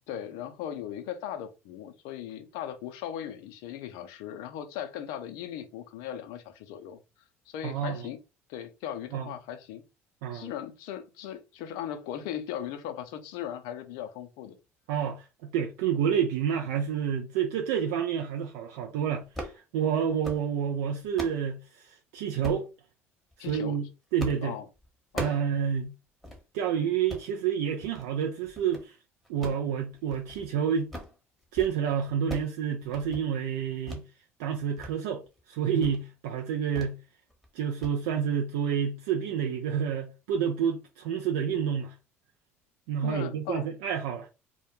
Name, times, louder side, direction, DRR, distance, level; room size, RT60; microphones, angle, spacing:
voice 1, 0.1-7.0 7.5-8.2 8.5-9.8 10.3-14.6 23.4-23.8 24.4-24.7 25.1-25.4 43.0-43.7, left 10 dB, 65° left, 0.4 m, -38 dB
voice 2, 7.6-8.1 9.1-9.3 10.2-10.5 14.9-22.7 23.5-23.9 24.1-24.6 25.1-25.9 26.5-29.0 29.3-30.9 31.5-34.0 34.4-35.2 35.5-37.0 37.5-41.9 42.9-44.3, right 8 dB, 70° right, 0.4 m, -29 dB
sound 1, 19.3-19.6 20.0-20.5 20.9-21.4 22.4-22.7 23.3-23.6 24.2-24.5 24.8-25.5 25.8-25.9 26.2-26.4 26.9-27.3 27.8-28.1 28.4-28.9 29.3-30.5 30.8-31.2 31.4-31.8 32.0-32.6 32.8-33.2 33.9-34.0 34.4-34.9 35.3-35.4 35.8-36.0 36.8-37.0 37.3-37.5 37.8-38.0, equal, ahead, 0.9 m, -40 dB
2.1 x 2.1 x 2.9 m
hypercardioid pair, 65°, 7 cm